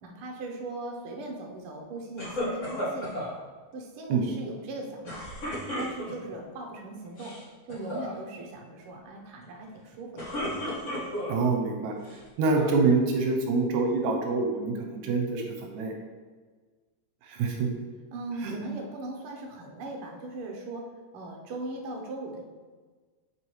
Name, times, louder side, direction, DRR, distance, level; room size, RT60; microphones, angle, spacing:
voice 1, 0.0-3.4 3.7-5.4 5.8-7.4 7.7-10.4 18.1-20.9 21.1-22.4, right 2 dB, 60° right, 0 dB, 1.6 m, -39 dB
sound 1, 2.2-3.3 5.0-6.3 7.0-7.4 7.7-8.1 9.9-11.5 12.0-12.8, equal, 30° left, 1.5 m, -34 dB
voice 2, 11.3-11.9 12.4-15.9 17.2-17.7 18.4-18.6, right 4 dB, 80° right, 2 dB, 2.1 m, -26 dB
8.0 x 5.2 x 3.2 m, 1.4 s
omnidirectional pair, 3.3 m